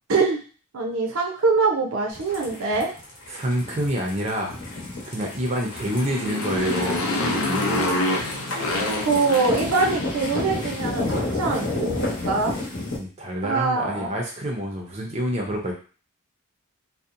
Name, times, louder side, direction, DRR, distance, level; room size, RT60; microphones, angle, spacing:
voice 1, 0.1-0.4 0.7-2.9 8.5-8.6 9.1-11.1 11.3-12.6 13.4-14.1, right 4 dB, 85° right, 1 dB, 0.6 m, -23 dB
sound 1, 2.1-13.0, left 2 dB, 60° left, 0.9 m, -31 dB
voice 2, 3.3-4.5 5.1-8.0 12.9-15.7, equal, 30° right, 0 dB, 0.5 m, -27 dB
Motorcycle, 5.7-10.3, left 2 dB, 80° left, 0.5 m, -27 dB
2.7 x 2.0 x 2.5 m, 0.38 s
head